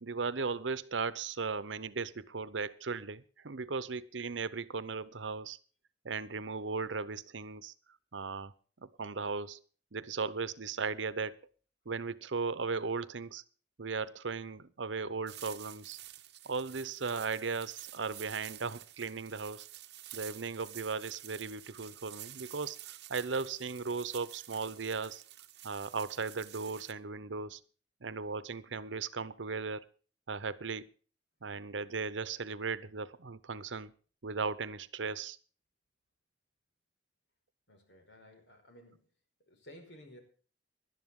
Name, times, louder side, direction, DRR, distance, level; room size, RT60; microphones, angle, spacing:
voice 1, 0.0-5.6 6.0-7.7 8.1-8.5 8.8-9.6 9.9-11.4 11.9-13.4 13.8-16.0 16.4-19.7 20.1-25.2 25.6-27.6 28.0-29.8 30.3-30.9 31.4-33.9 34.2-35.4, right 4 dB, 90° right, 0.9 m, -37 dB
sound 1, 15.3-26.9, right 14 dB, 65° right, 1.0 m, -50 dB
voice 2, 37.7-39.1 39.5-40.2, equal, 70° left, 5.0 m, -55 dB
18.5 x 11.5 x 3.7 m
head